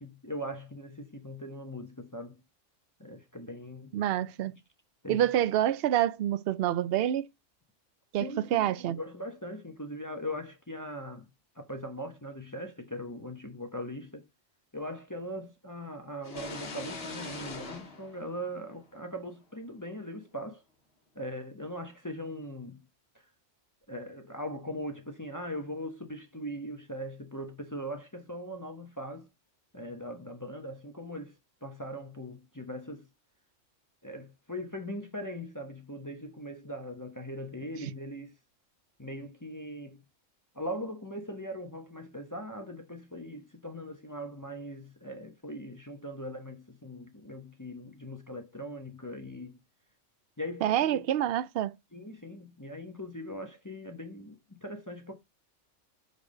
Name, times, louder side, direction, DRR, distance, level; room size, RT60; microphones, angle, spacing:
voice 1, 0.0-2.4 3.0-4.0 5.0-5.2 8.2-11.3 11.5-14.2 14.7-20.6 21.1-22.8 23.9-29.3 29.7-31.3 31.6-33.1 34.0-38.3 39.0-40.0 40.5-49.6 50.4-51.1 51.9-55.2, equal, 15° left, 1.1 m, -40 dB
voice 2, 3.9-4.6 5.1-7.3 8.1-9.0 50.6-51.7, right 12 dB, 60° right, 0.7 m, -27 dB
sound 1, 16.2-19.0, left 3 dB, 55° left, 1.7 m, -42 dB
5.3 x 4.8 x 6.3 m
omnidirectional pair, 1.3 m